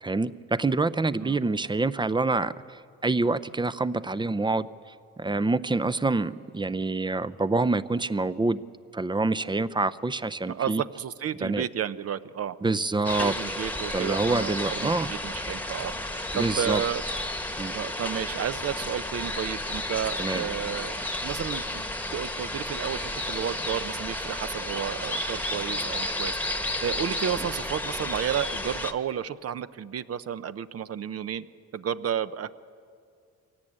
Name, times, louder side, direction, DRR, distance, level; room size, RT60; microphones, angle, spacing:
voice 1, 0.0-4.7 5.2-8.6 8.9-10.8 11.4-11.7 12.6-13.3 13.9-15.1 16.3-16.8 17.6-17.7 20.2-20.4, right 3 dB, 15° right, 14 dB, 0.6 m, -26 dB
voice 2, 10.5-12.6 13.2-17.0 17.7-31.4 31.7-32.5, right 9 dB, 50° right, 13 dB, 0.8 m, -32 dB
sound 1, 13.0-28.9, left 1 dB, 5° left, 1.2 m, -32 dB
23.5 x 17.5 x 8.8 m, 2.3 s
cardioid pair, 90°, 30 cm